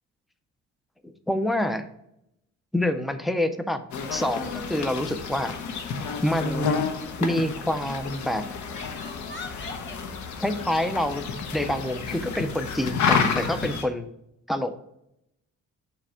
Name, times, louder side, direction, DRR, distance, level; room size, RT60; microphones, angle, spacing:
voice 1, 1.0-1.9 2.7-3.8 4.1-5.5 6.2-6.9 7.2-8.4 10.4-14.1 14.5-14.7, left 1 dB, ahead, 9 dB, 0.4 m, -27 dB
sound 1, 3.9-13.8, left 5 dB, 75° left, 1.0 m, -30 dB
Crying sobbing, 7.2-7.5 8.3-10.0 11.1-12.1 13.0-13.9, left 3 dB, 40° left, 1.4 m, -43 dB
7.5 x 3.2 x 4.9 m, 0.80 s
cardioid pair, 160°, 30 cm